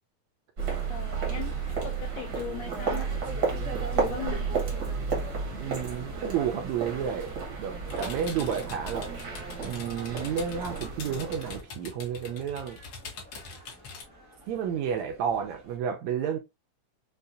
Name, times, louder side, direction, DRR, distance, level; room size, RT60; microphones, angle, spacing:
sound 1, 0.6-15.8, right 1 dB, 35° right, 0.4 m, -54 dB
sound 2, 0.6-11.6, right 5 dB, 60° right, 1.1 m, -32 dB
voice 1, 0.9-3.6 3.9-4.6, left 9 dB, 85° left, 1.5 m, -40 dB
voice 2, 5.5-7.3 7.6-9.1 9.6-12.8 14.5-16.4, right 8 dB, 80° right, 1.7 m, -31 dB
sound 3, 7.8-14.0, left 4 dB, 60° left, 1.8 m, -43 dB
5.4 x 2.3 x 2.5 m
omnidirectional pair, 3.6 m